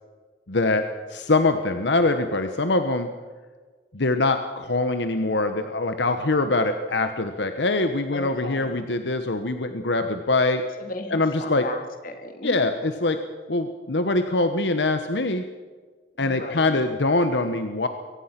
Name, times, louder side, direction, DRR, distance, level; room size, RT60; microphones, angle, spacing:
voice 1, 0.5-3.1 3.9-10.6 11.1-11.6 12.4-13.2 13.5-15.4 16.2-17.9, left 2 dB, 80° left, 8 dB, 1.2 m, -23 dB
voice 2, 8.1-8.7 10.8-12.7 16.1-16.8, left 2 dB, 50° left, 5 dB, 2.9 m, -36 dB
23.0 x 18.5 x 6.0 m, 1.5 s
head